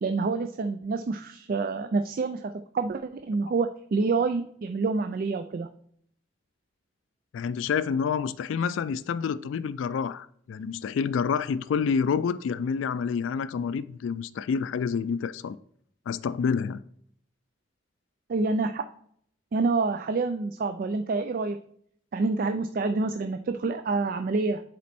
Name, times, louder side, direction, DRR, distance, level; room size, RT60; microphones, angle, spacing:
voice 1, 0.0-5.7 18.3-18.9 19.5-21.6 22.1-24.6, right 3 dB, 45° right, 0.3 m, -27 dB
voice 2, 7.3-15.6 16.1-16.8, left 6 dB, 80° left, 0.3 m, -28 dB
7.3 x 4.2 x 4.2 m
head